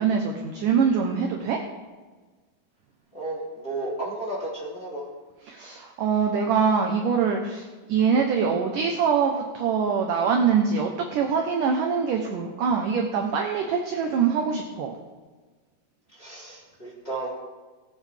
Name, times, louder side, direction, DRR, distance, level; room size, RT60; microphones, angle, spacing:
voice 1, 0.0-1.6 5.5-14.9, right 6 dB, 75° right, 2 dB, 2.0 m, -24 dB
voice 2, 3.1-5.1 16.1-17.3, right 2 dB, 15° left, -7 dB, 2.9 m, -33 dB
19.0 x 8.8 x 3.4 m, 1.3 s
omnidirectional pair, 4.9 m